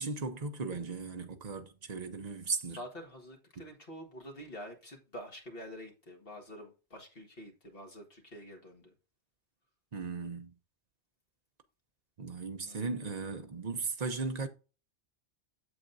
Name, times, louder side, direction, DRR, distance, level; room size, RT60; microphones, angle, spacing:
voice 1, 0.0-2.8 9.9-10.5 12.2-14.5, right 4 dB, 40° right, 0.8 m, -37 dB
voice 2, 2.8-8.9 12.7-12.9, equal, 55° left, 1.9 m, -47 dB
7.8 x 7.3 x 2.6 m
omnidirectional pair, 1.1 m